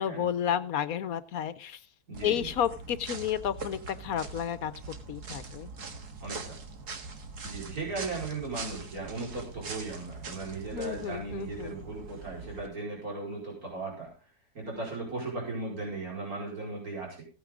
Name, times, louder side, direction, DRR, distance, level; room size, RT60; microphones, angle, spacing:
voice 1, 0.0-1.8 2.2-4.7 5.1-5.7 10.7-11.8, left 9 dB, 70° left, 14 dB, 1.2 m, -31 dB
voice 2, 2.1-2.5 6.2-6.6 7.4-14.1 14.6-17.2, right 3 dB, 65° right, -2 dB, 5.4 m, -37 dB
sound 1, 2.1-12.7, right 4 dB, 90° right, 2.2 m, -42 dB
16.0 x 9.3 x 3.8 m, 0.35 s
omnidirectional pair, 1.6 m